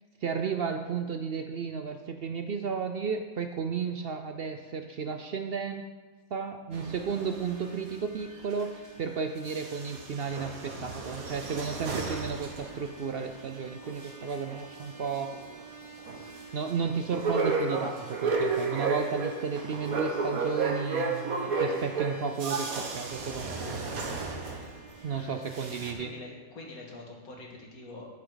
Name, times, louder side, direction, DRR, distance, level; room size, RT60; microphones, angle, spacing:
voice 1, 0.2-5.8 6.3-15.4 16.5-23.7 25.0-26.1, right 5 dB, 55° right, 6 dB, 0.7 m, -33 dB
sound 1, 6.7-9.1 9.4-25.1 25.4-25.9, right 4 dB, 75° right, 1.7 m, -34 dB
voice 2, 26.0-28.1, left 2 dB, 85° left, -1 dB, 2.4 m, -45 dB
11.0 x 10.5 x 3.9 m, 1.3 s
omnidirectional pair, 1.5 m